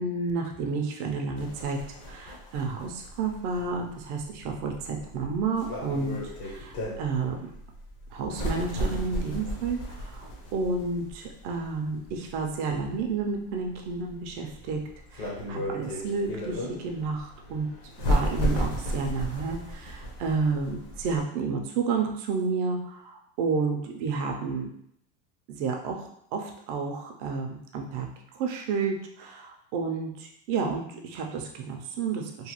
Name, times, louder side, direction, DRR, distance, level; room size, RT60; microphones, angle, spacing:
voice 1, 0.0-1.8 2.1-7.5 8.1-14.8 15.1-17.7 18.1-24.7 25.5-28.1 28.3-32.5, right 4 dB, 40° right, 2 dB, 0.4 m, -31 dB
sound 1, 1.4-21.2, equal, 40° left, 0.8 m, -34 dB
3.1 x 2.1 x 2.9 m, 0.71 s
supercardioid pair, 135°, 48 cm